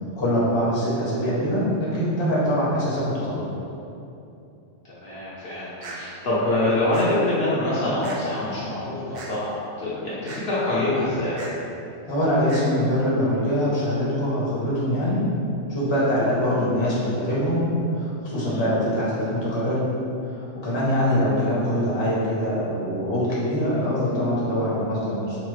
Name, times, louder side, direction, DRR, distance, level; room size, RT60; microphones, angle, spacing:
voice 1, 0.2-3.5 12.1-15.2 15.7-17.7 17.9-19.9 20.3-25.4, equal, 25° left, -8 dB, 0.7 m, -23 dB
voice 2, 4.8-11.4 18.5-18.7, left 1 dB, 60° left, -9 dB, 0.8 m, -25 dB
sound 1, 5.8-6.0 6.9-7.1 8.0-8.2 9.1-9.3 10.2-10.4 11.4-11.5 12.5-12.6, right 3 dB, 65° right, 0.4 m, -37 dB
3.9 x 2.0 x 3.1 m, 2.7 s
omnidirectional pair, 1.3 m